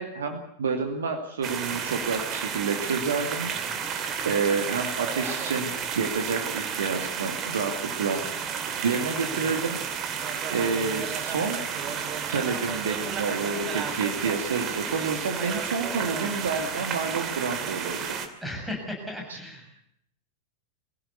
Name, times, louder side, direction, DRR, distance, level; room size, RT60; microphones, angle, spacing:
voice 1, 0.0-3.5 4.2-8.2 8.8-9.8 10.5-11.6 12.3-18.2 19.3-19.4, right 5 dB, 65° right, 5 dB, 2.3 m, -29 dB
sound 1, 1.4-18.3, right 7 dB, 30° right, 2.5 m, -32 dB
voice 2, 18.4-19.7, left 1 dB, ahead, 1 dB, 6.9 m, -36 dB
24.0 x 16.0 x 8.2 m, 0.71 s
figure-of-eight pair, 90°, 0 cm